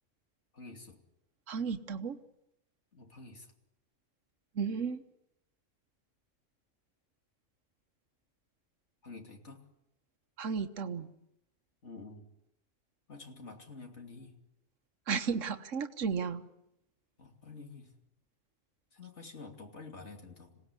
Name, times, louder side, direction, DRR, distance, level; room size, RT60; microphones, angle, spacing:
voice 1, 0.5-1.0 2.9-3.5 9.0-9.6 11.8-12.3 13.1-14.4 17.2-17.9 18.9-20.6, left 3 dB, 65° left, 3 dB, 3.2 m, -49 dB
voice 2, 1.5-2.2 4.5-5.0 10.4-11.1 15.1-16.4, right 6 dB, 80° right, 8 dB, 1.6 m, -34 dB
26.5 x 18.0 x 9.8 m, 0.83 s
omnidirectional pair, 1.3 m